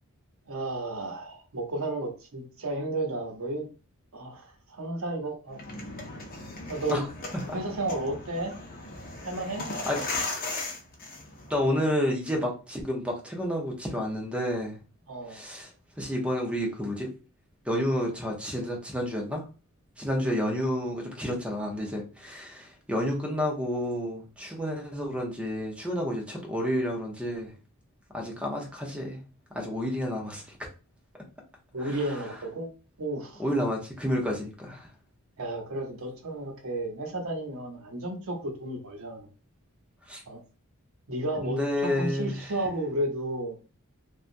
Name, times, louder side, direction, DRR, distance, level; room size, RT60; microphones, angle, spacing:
voice 1, 0.5-3.7 4.1-5.6 6.7-7.1 7.5-8.5 9.2-9.7 15.1-15.4 20.2-20.5 31.7-32.7 33.0-33.4 35.4-39.3 40.3-40.4 41.1-43.6, right 1 dB, 65° right, 0.8 m, -33 dB
sound 1, 5.5-11.7, left 2 dB, 40° left, 0.6 m, -37 dB
voice 2, 11.5-14.8 15.3-15.7 16.0-17.1 17.6-19.4 20.0-27.5 28.1-29.2 29.5-30.6 31.8-32.2 33.4-34.9 40.1-40.2 41.4-42.5, equal, 5° right, 0.6 m, -30 dB
2.8 x 2.3 x 2.5 m
head